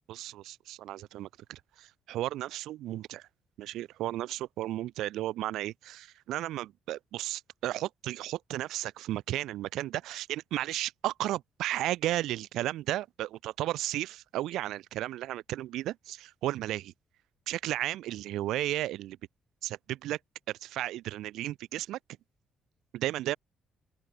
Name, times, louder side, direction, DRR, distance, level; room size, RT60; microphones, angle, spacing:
voice 1, 0.1-3.3 3.6-16.9 17.5-19.2 19.6-20.2 20.5-22.0 22.9-23.4, right 14 dB, 85° right, 7.0 m, -34 dB
open air
cardioid pair, 90°, 0 cm